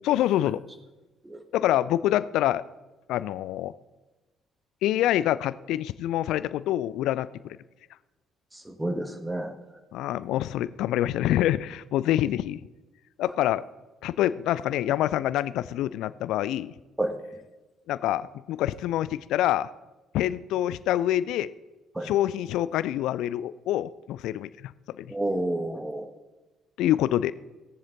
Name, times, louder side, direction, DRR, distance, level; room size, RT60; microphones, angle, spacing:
voice 1, 0.0-0.6 1.5-2.6 3.1-3.7 4.8-7.6 9.9-12.6 13.2-13.6 14.0-16.7 17.9-19.7 20.1-21.5 22.0-24.7 25.0-25.1 26.8-27.3, left 13 dB, 60° left, 16 dB, 0.3 m, -26 dB
voice 2, 8.5-9.6 17.0-17.2 21.9-22.1 25.1-26.1, right 1 dB, 10° right, 7 dB, 1.5 m, -30 dB
16.5 x 7.3 x 3.8 m, 1.1 s
figure-of-eight pair, 45°, 0 cm